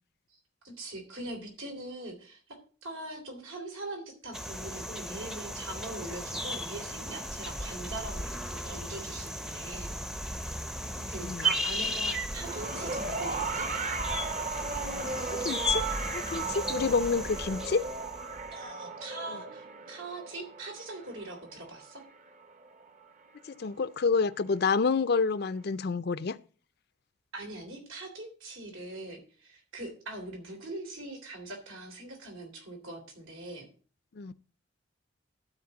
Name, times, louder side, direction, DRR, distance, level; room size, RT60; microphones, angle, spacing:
voice 1, 0.6-9.9 11.1-13.7 18.5-22.0 27.3-33.7, right 2 dB, 85° right, 3.3 m, -42 dB
sound 1, 4.3-18.5, equal, ahead, 0.5 m, -35 dB
voice 2, 11.0-11.5 15.4-15.8 16.1-17.9 23.5-26.4 34.2-34.3, left 4 dB, 50° left, 0.4 m, -28 dB
sound 2, 12.4-22.8 23.9-24.0, right 4 dB, 35° right, 0.8 m, -36 dB
12.0 x 4.3 x 7.0 m
head